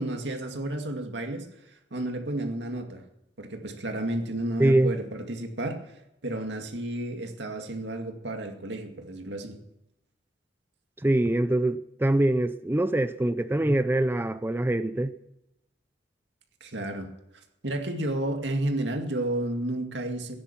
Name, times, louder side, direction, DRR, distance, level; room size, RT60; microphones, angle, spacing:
voice 1, 0.0-3.0 3.4-9.6 16.6-17.1 17.6-20.4, right 1 dB, 85° right, 2.2 m, -32 dB
voice 2, 4.6-4.9 11.0-15.1, right 1 dB, 15° right, 0.5 m, -24 dB
16.0 x 10.0 x 7.3 m
head